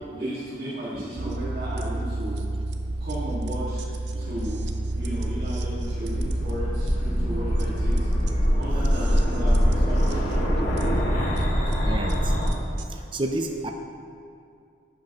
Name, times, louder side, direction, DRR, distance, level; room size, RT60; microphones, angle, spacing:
voice 1, 0.1-2.4 3.0-3.9 4.2-4.7 4.9-8.1 8.6-10.5, equal, 60° right, -12 dB, 1.9 m, -35 dB
sound 1, 1.2-12.9, right 2 dB, 80° right, 0.6 m, -31 dB
sound 2, 4.1-12.5, equal, 50° left, 1.4 m, -24 dB
voice 2, 11.8-12.3 12.9-13.7, right 2 dB, 30° right, 3 dB, 0.5 m, -30 dB
11.0 x 7.6 x 3.0 m, 2.4 s
head